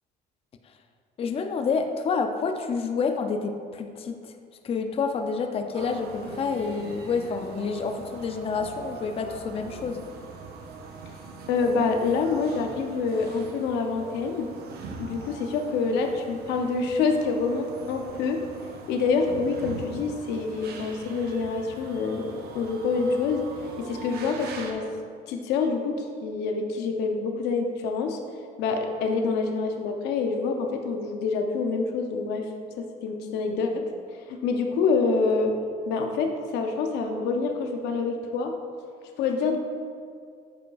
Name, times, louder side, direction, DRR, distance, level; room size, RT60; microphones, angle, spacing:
voice 1, 1.2-4.3 4.6-10.0, left 5 dB, 35° left, 6 dB, 0.4 m, -28 dB
sound 1, 5.7-24.7, right 4 dB, 70° right, 0.7 m, -42 dB
voice 2, 11.5-14.5 15.0-18.4 18.9-23.5 23.8-24.8 25.3-28.2 28.6-32.5 32.8-33.9 34.3-35.5 35.9-38.5 39.2-39.6, left 4 dB, 90° left, 4 dB, 0.6 m, -26 dB
8.7 x 5.1 x 2.3 m, 2.2 s
cardioid pair, 110°, 17 cm